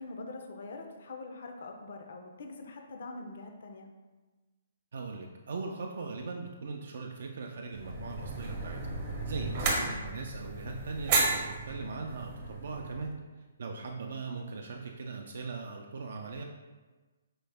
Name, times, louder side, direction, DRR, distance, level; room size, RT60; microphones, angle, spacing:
voice 1, 0.0-3.9 9.5-9.6, left 3 dB, 65° left, 3 dB, 0.5 m, -44 dB
voice 2, 4.9-8.9 9.3-13.2 13.6-16.4, right 4 dB, 70° right, 1 dB, 0.3 m, -39 dB
sound 1, 7.7-13.1, right 3 dB, 35° right, 0.6 m, -33 dB
4.5 x 2.0 x 3.3 m, 1.3 s
hypercardioid pair, 155°, 0 cm